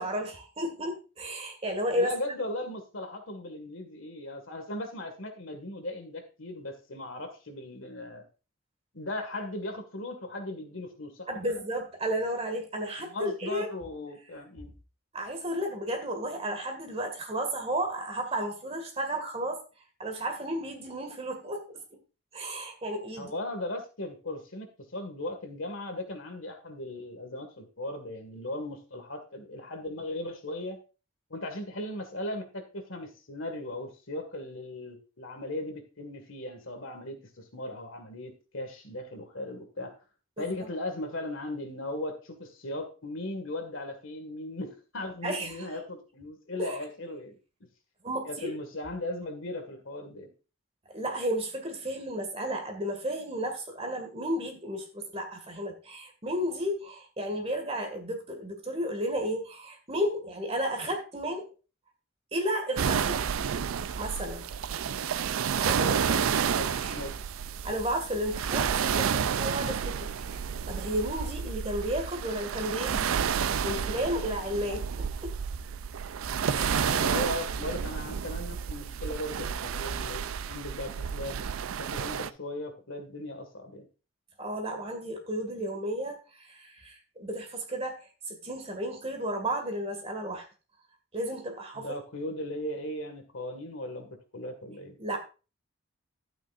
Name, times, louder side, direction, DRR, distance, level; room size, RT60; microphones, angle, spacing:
voice 1, 0.0-2.1 11.3-13.7 15.1-19.6 20.0-21.8 22.3-23.3 40.4-40.7 45.2-45.5 46.6-46.8 48.0-48.6 50.9-61.5 62.3-63.3 64.0-64.5 64.9-66.0 66.8-67.0 67.6-70.4 70.7-75.3 76.5-76.9 84.4-90.5 91.1-91.9 95.0-95.2, equal, 30° right, 4 dB, 2.0 m, -33 dB
voice 2, 1.9-8.3 8.9-11.6 13.0-14.7 23.2-30.8 31.3-40.0 40.4-47.4 48.2-50.3 65.6-67.2 76.8-83.9 91.7-95.0, left 1 dB, 65° left, 7 dB, 1.9 m, -38 dB
sound 1, 62.8-82.3, right 7 dB, 75° right, 0.4 m, -30 dB
11.5 x 9.0 x 2.5 m, 0.33 s
head